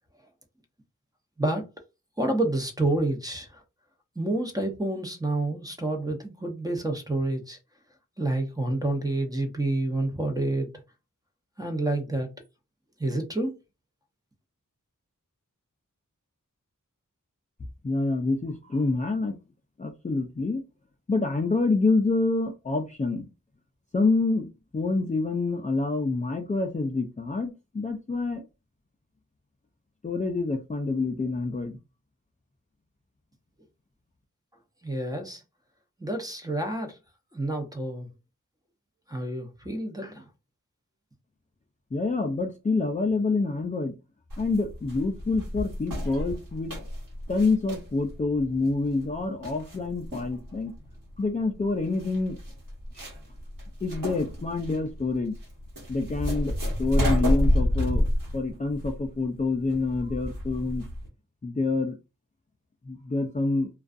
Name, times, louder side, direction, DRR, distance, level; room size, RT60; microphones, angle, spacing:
voice 1, 2.2-3.5 4.2-7.6 8.2-10.7 11.6-12.3 13.0-13.5 34.8-35.4 36.0-36.9 37.3-38.1 39.1-40.3, right 2 dB, 10° right, 0.7 m, -28 dB
voice 2, 17.8-19.4 19.8-20.6 21.1-23.3 23.9-28.4 30.0-31.8 41.9-44.0 44.4-46.7 47.3-50.7 51.2-52.4 53.8-55.3 55.9-58.0 58.3-60.9 61.4-62.0 62.9-63.7, left 3 dB, 25° left, 0.4 m, -27 dB
sound 1, 44.3-61.1, equal, 80° right, 1.2 m, -30 dB
2.4 x 2.3 x 2.4 m
cardioid pair, 40°, 33 cm